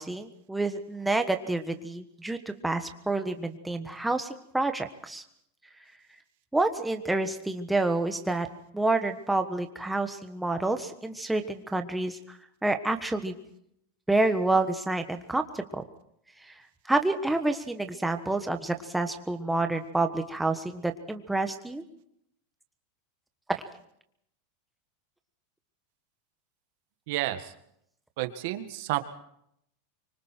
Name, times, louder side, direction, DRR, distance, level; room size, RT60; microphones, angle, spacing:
voice 1, 0.0-2.4 2.6-5.2 6.5-8.5 8.7-12.4 12.6-13.3 14.1-15.8 16.9-21.8 23.5-23.6, right 2 dB, 5° right, 6 dB, 1.3 m, -28 dB
voice 2, 27.1-27.5 28.2-29.0, right 16 dB, 55° right, 8 dB, 1.8 m, -30 dB
25.5 x 25.0 x 4.5 m, 0.74 s
supercardioid pair, 160°, 0 cm